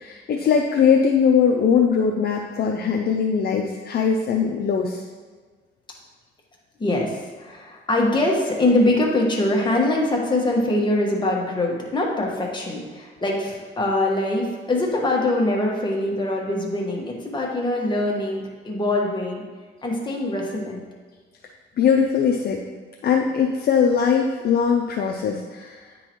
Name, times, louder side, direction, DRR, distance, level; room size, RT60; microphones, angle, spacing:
voice 1, 0.0-5.0 21.8-22.6 23.0-25.8, left 6 dB, 55° left, 1 dB, 0.5 m, -20 dB
voice 2, 6.8-19.4 19.8-20.8, left 1 dB, 25° left, -2 dB, 1.5 m, -23 dB
9.7 x 3.8 x 3.1 m, 1.4 s
cardioid pair, 90°, 20 cm